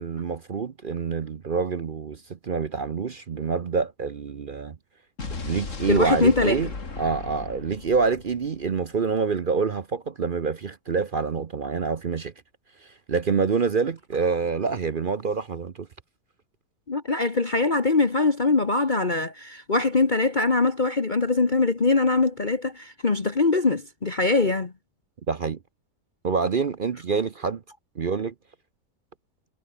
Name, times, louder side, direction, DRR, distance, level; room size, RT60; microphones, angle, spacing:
voice 1, 0.0-4.8 5.4-6.7 7.0-12.3 12.8-15.9 25.3-25.6 26.2-27.6 28.0-28.3, right 5 dB, 45° right, 0.6 m, -26 dB
Explosion, 5.2-9.3, left 4 dB, 45° left, 3.0 m, -37 dB
voice 2, 5.9-6.6 16.9-24.7, left 3 dB, 30° left, 1.4 m, -22 dB
omnidirectional pair, 1.8 m